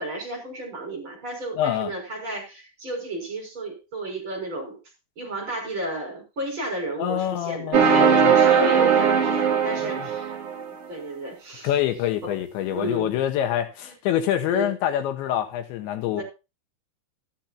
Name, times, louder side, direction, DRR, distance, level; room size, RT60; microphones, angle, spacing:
voice 1, 0.0-4.8 5.2-10.4 10.9-11.7 12.2-12.3 12.7-13.2 13.8-13.9 14.5-14.7 16.2-16.3, right 1 dB, 25° right, 6.4 m, -32 dB
voice 2, 1.6-1.9 7.0-8.3 9.9-10.1 11.6-16.2, left 11 dB, 85° left, 3.6 m, -26 dB
sound 1, 7.7-10.7, right 6 dB, 80° right, 1.3 m, -19 dB
13.5 x 12.0 x 2.8 m
omnidirectional pair, 5.1 m